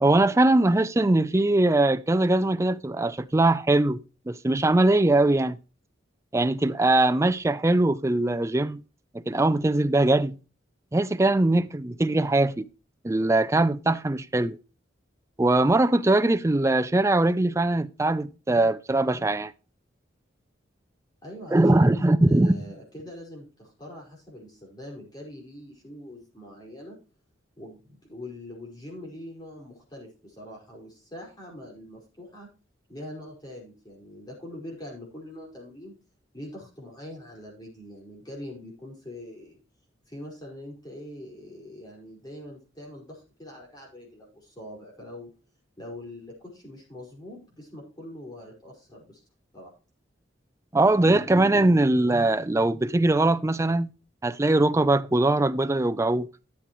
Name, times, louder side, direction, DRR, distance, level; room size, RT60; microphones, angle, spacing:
voice 1, 0.0-4.0 4.3-5.6 6.3-8.8 9.1-10.4 10.9-12.7 13.0-14.6 15.4-19.5 21.5-22.6 50.7-53.9 54.2-56.3, right 2 dB, 15° right, 0.4 m, -21 dB
voice 2, 21.2-27.0 27.6-32.5 32.9-35.9 36.3-39.6 40.1-45.3 45.8-49.2 49.5-49.7, left 1 dB, 20° left, 5.2 m, -43 dB
12.5 x 8.3 x 3.1 m
head